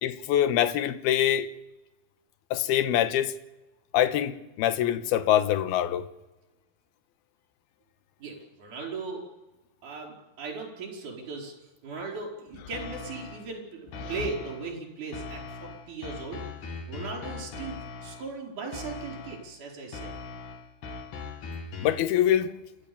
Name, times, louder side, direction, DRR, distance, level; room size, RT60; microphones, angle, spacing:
voice 1, 0.0-1.5 2.5-3.4 3.9-6.0 14.0-14.1 21.8-22.6, left 11 dB, 70° left, 2.6 m, -24 dB
voice 2, 8.2-9.2 9.8-11.5 11.8-16.4 16.9-20.1, right 4 dB, 45° right, 6.1 m, -38 dB
sound 1, 12.7-13.5 13.9-14.7 15.1-18.3 18.7-19.5 19.9-22.1, left 4 dB, 55° left, 2.8 m, -40 dB
29.5 x 13.5 x 7.1 m
omnidirectional pair, 5.3 m